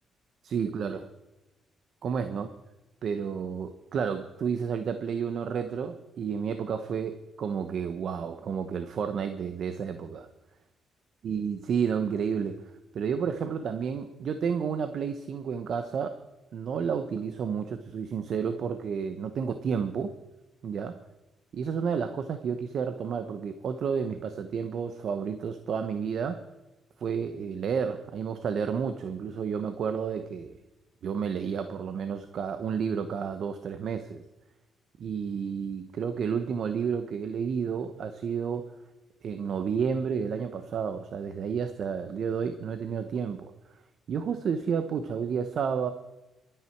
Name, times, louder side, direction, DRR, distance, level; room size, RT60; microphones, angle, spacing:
voice 1, 0.4-1.1 2.0-2.5 3.0-10.3 11.2-16.2 16.5-20.1 20.6-21.0 21.5-26.4 27.0-30.6 31.0-34.2 35.0-38.7 39.2-43.5 44.1-45.9, right 6 dB, 60° right, 9 dB, 1.0 m, -31 dB
23.0 x 9.1 x 4.6 m, 1.1 s
cardioid pair, 90°, 0 cm